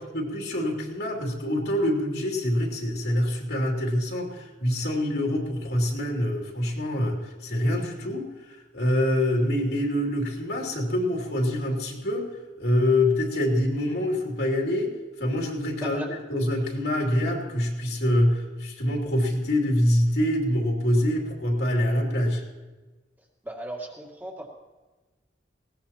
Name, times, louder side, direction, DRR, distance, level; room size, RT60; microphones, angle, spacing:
voice 1, 0.1-12.3 12.6-16.0 16.3-22.4, left 1 dB, 70° left, -1 dB, 2.9 m, -25 dB
voice 2, 15.8-16.1 23.4-24.5, right 1 dB, 10° right, 0 dB, 2.3 m, -37 dB
20.0 x 17.5 x 3.0 m, 1.2 s
head